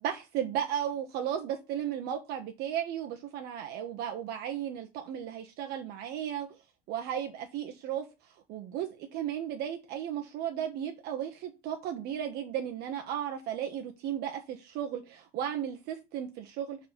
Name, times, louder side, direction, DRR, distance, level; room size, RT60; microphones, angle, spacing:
voice 1, 0.0-6.5 6.9-8.0 8.5-16.8, right 10 dB, 55° right, 1.2 m, -35 dB
6.1 x 4.3 x 6.1 m
cardioid pair, 145°, 20 cm